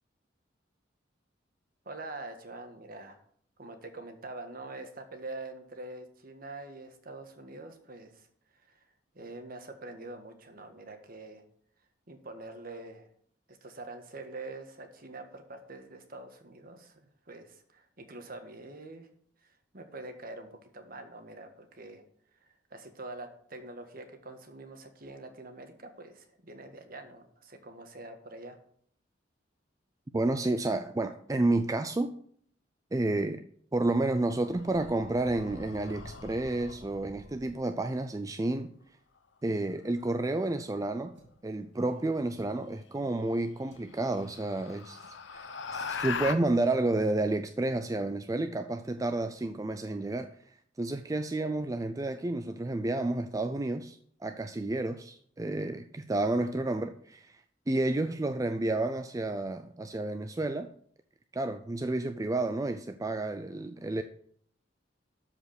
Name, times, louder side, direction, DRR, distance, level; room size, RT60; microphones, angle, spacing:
voice 1, 1.8-3.2 3.6-8.3 8.6-8.8 9.1-11.4 12.1-13.1 13.5-19.1 19.4-22.0 22.4-28.6, right 2 dB, 50° right, 1.5 m, -45 dB
voice 2, 30.1-32.1 32.9-33.4 33.7-38.7 39.4-41.1 41.4-60.7 61.3-64.0, right 2 dB, 20° right, 0.4 m, -31 dB
sound 1, 34.2-37.7 40.0-40.5 42.5-42.6 43.1-43.2 43.7-46.3, left 5 dB, 70° left, 0.8 m, -40 dB
sound 2, 41.1-41.5 42.3-42.7 43.6-43.9 45.0-45.3 46.0-46.2 46.5-46.6 47.0-47.2, right 1 dB, 65° right, 2.1 m, -61 dB
13.0 x 5.0 x 6.5 m
head